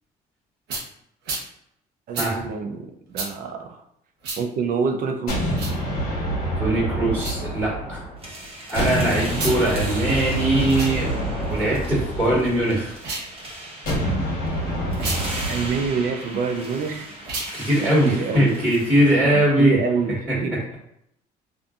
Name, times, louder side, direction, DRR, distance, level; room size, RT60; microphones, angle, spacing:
sound 1, 0.7-0.9 1.2-1.5 2.1-2.3 3.1-3.3 4.2-4.4 5.5-5.8 7.1-7.4 9.3-9.6 10.6-10.9 12.9-13.3 14.9-15.2 17.2-17.5, right 3 dB, 80° right, 0.8 m, -30 dB
voice 1, 2.1-3.8 4.4-5.6 15.5-17.1 18.0-18.5 19.6-20.6, right 5 dB, 55° right, 5 dB, 0.5 m, -26 dB
sound 2, 5.3-8.3 8.8-13.0 13.9-16.0, right 1 dB, 60° left, 1.2 m, -27 dB
voice 2, 6.6-8.0 8.7-11.2 11.5-12.9 17.5-19.8, right 1 dB, 5° right, -10 dB, 1.5 m, -21 dB
sound 3, 8.2-20.1, right 1 dB, 35° right, 0.9 m, -38 dB
2.6 x 2.5 x 2.3 m, 0.74 s
cardioid pair, 110°, 17 cm